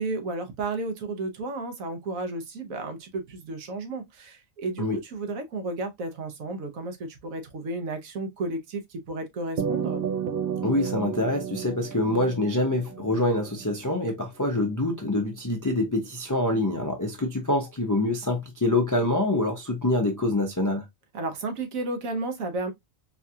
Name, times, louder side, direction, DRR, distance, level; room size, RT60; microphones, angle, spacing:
voice 1, 0.0-10.0 21.1-22.7, right 2 dB, 80° right, 1.3 m, -33 dB
sound 1, 9.6-14.2, right 8 dB, 60° right, 0.6 m, -32 dB
voice 2, 10.6-20.8, left 2 dB, 25° left, 0.4 m, -25 dB
4.4 x 2.4 x 2.7 m
omnidirectional pair, 1.4 m